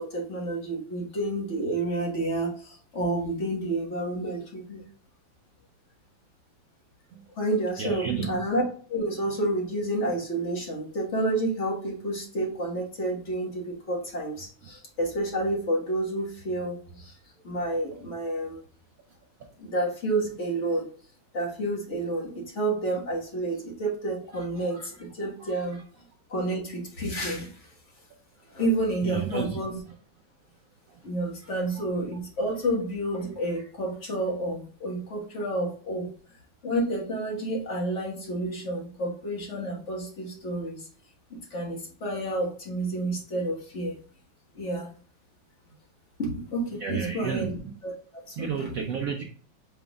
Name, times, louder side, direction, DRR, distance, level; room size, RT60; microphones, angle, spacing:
voice 1, 0.0-4.8 7.4-8.6 8.9-17.2 17.4-18.6 19.6-20.9 21.3-25.8 26.3-27.7 28.5-29.8 31.0-36.1 36.6-40.9 41.3-44.0 44.5-44.9 46.2-47.6 47.8-47.9 48.3-48.7, right 1 dB, 40° left, -1 dB, 1.6 m, -30 dB
voice 2, 7.8-8.4 24.7-24.9 25.4-25.8 29.0-29.6 31.4-31.5 33.5-33.6 46.8-47.7 48.4-49.2, right 6 dB, 85° right, 3 dB, 0.7 m, -32 dB
6.0 x 3.7 x 2.3 m, 0.43 s
omnidirectional pair, 2.2 m